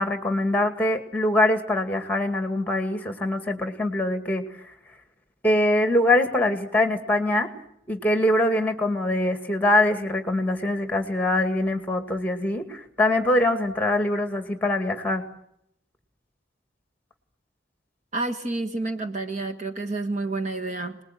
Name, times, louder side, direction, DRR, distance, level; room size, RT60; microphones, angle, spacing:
voice 1, 0.0-4.4 5.4-7.5 7.9-15.2, left 1 dB, 10° left, 7 dB, 2.3 m, -23 dB
voice 2, 18.1-21.0, right 2 dB, 40° right, 6 dB, 1.7 m, -29 dB
27.0 x 20.5 x 9.2 m, 0.74 s
head